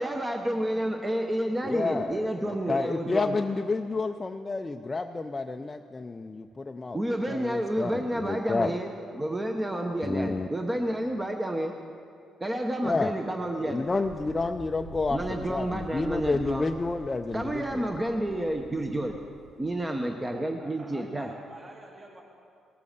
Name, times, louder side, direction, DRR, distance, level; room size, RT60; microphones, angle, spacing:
voice 1, 0.0-3.4 6.9-11.7 12.4-13.8 15.1-16.7 17.3-19.2 19.6-21.3, right 1 dB, 15° right, 3 dB, 1.0 m, -30 dB
voice 2, 1.6-7.0 7.3-8.7 10.0-10.5 12.8-13.1 13.6-15.2 15.5-17.8, left 3 dB, 25° left, 4 dB, 0.5 m, -30 dB
Wind, 13.8-19.7, left 1 dB, 80° right, 4.0 m, -45 dB
voice 3, 20.3-22.2, right 2 dB, 35° right, 0 dB, 2.3 m, -48 dB
18.0 x 8.4 x 6.7 m, 2.4 s
cardioid pair, 90°, 0 cm